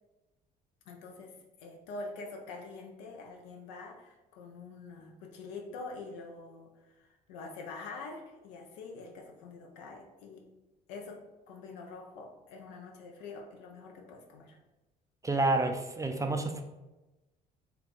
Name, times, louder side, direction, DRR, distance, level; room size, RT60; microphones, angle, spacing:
voice 1, 0.9-10.5 10.9-11.2 11.5-14.6, left 3 dB, 75° left, 1 dB, 0.6 m, -45 dB
voice 2, 15.2-16.6, right 2 dB, 15° right, 5 dB, 0.4 m, -29 dB
3.3 x 2.3 x 3.9 m, 1.1 s
hypercardioid pair, 50°, 21 cm